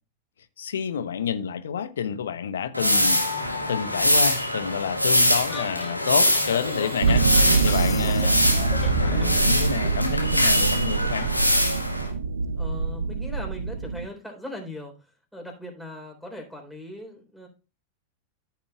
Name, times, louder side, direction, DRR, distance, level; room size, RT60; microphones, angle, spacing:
voice 1, 0.6-7.3 7.6-8.4 9.0-11.3, left 7 dB, 65° left, 0.9 m, -29 dB
sound 1, 2.7-12.1, left 1 dB, 90° left, 1.5 m, -23 dB
sound 2, 5.5-9.4, left 5 dB, 25° left, 1.8 m, -35 dB
sound 3, 7.0-14.1, right 5 dB, 70° right, 0.5 m, -25 dB
voice 2, 12.6-14.9 15.3-17.5, left 1 dB, ahead, 3.8 m, -39 dB
14.0 x 7.2 x 2.3 m
figure-of-eight pair, 90°, 0 cm